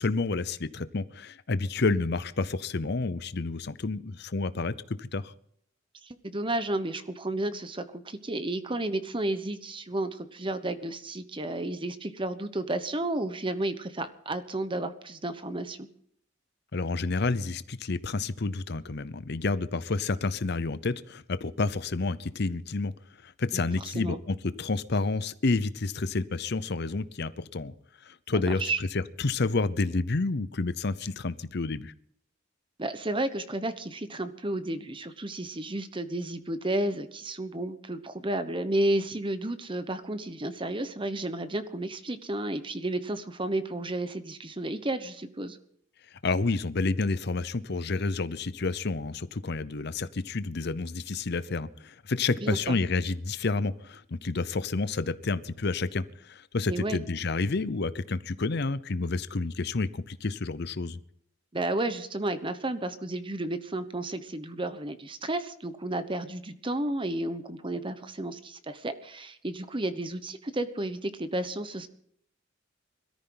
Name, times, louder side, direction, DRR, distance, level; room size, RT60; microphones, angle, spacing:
voice 1, 0.0-5.3 16.7-22.9 23.2-27.7 28.0-31.9 46.2-61.0, left 3 dB, 55° left, 15 dB, 0.7 m, -29 dB
voice 2, 6.0-15.9 23.8-24.2 28.3-28.8 32.8-45.6 52.4-52.8 56.7-57.0 61.5-71.9, right 1 dB, 25° right, 11 dB, 1.1 m, -32 dB
22.0 x 14.0 x 3.9 m, 0.66 s
head